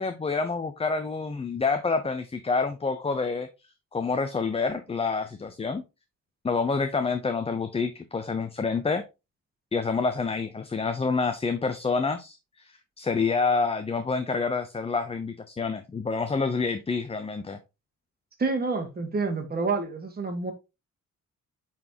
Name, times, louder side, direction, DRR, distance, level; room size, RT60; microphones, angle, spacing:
voice 1, 0.0-3.5 3.9-5.8 6.4-9.0 9.7-17.6, left 4 dB, 20° left, 0.6 m, -28 dB
voice 2, 18.4-20.5, right 4 dB, 30° right, 1.6 m, -28 dB
8.5 x 4.1 x 2.8 m
cardioid pair, 125°, 30 cm